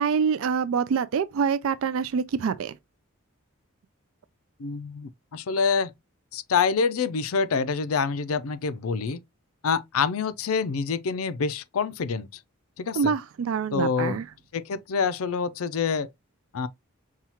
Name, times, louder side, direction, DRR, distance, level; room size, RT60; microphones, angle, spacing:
voice 1, 0.0-2.7 13.0-14.2, right 6 dB, 70° right, 0.3 m, -25 dB
voice 2, 4.6-5.9 6.3-9.2 9.6-12.3 12.8-13.1 13.7-14.2 14.5-16.1 16.5-16.7, left 5 dB, 80° left, 0.5 m, -26 dB
5.6 x 2.4 x 2.9 m
head